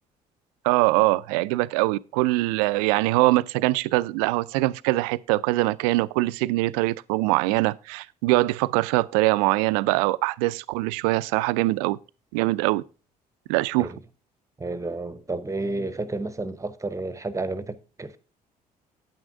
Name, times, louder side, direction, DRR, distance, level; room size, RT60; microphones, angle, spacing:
voice 1, 0.6-12.0 12.3-12.8 13.5-13.9, right 20 dB, 65° right, 0.4 m, -23 dB
voice 2, 14.6-18.2, right 2 dB, 15° right, 0.9 m, -31 dB
9.2 x 8.7 x 3.6 m
figure-of-eight pair, 50°, 20 cm